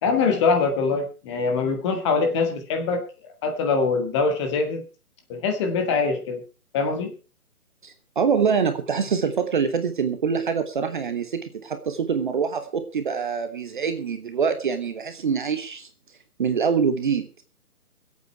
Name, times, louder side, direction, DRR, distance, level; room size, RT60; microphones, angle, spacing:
voice 1, 0.0-3.0 3.4-4.8 5.3-6.4 6.7-7.1, left 4 dB, 20° left, 5 dB, 1.7 m, -23 dB
voice 2, 7.8-15.9 16.4-17.3, right 6 dB, 35° right, 9 dB, 1.1 m, -25 dB
22.0 x 8.4 x 4.5 m, 0.34 s
figure-of-eight pair, 145°, 45 cm